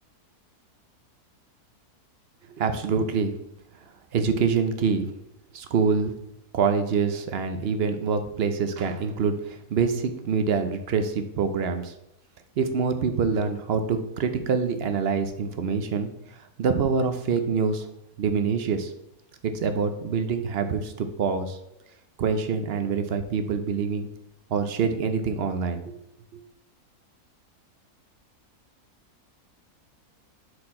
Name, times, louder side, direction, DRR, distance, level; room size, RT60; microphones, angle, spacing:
voice 1, 2.6-3.3 4.1-5.1 5.5-6.1 6.5-11.9 12.6-16.1 16.6-17.9 18.2-18.9 19.4-21.6 22.2-24.1 24.5-25.9, right 5 dB, 60° right, 7 dB, 0.7 m, -25 dB
6.6 x 4.4 x 4.2 m, 0.84 s
omnidirectional pair, 1.6 m